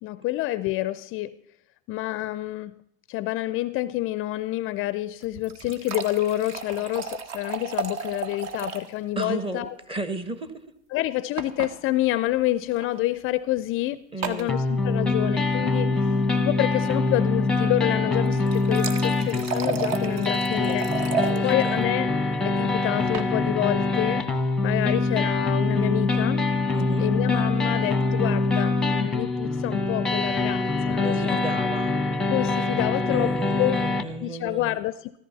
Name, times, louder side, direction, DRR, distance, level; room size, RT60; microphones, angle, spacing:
voice 1, 0.0-1.4 1.9-9.7 10.9-15.9 16.4-20.9 21.4-22.1 22.4-24.3 24.6-26.4 27.0-31.4 32.3-33.8 34.2-35.2, left 16 dB, 40° left, 16 dB, 0.4 m, -28 dB
sound 1, 5.2-8.9 9.2-9.3 9.6-9.7 11.4-11.7 12.7-12.9 14.2-14.5 18.3-21.4 22.8-23.3, right 5 dB, 50° right, 1.4 m, -32 dB
voice 2, 9.2-10.5 14.1-14.6 21.1-21.8 26.7-27.1 31.0-31.9 33.1-34.8, right 2 dB, 15° right, 11 dB, 1.1 m, -33 dB
sound 2, 14.5-34.0, left 3 dB, ahead, 1.0 m, -24 dB
14.0 x 14.0 x 4.0 m, 0.74 s
hypercardioid pair, 110°, 35 cm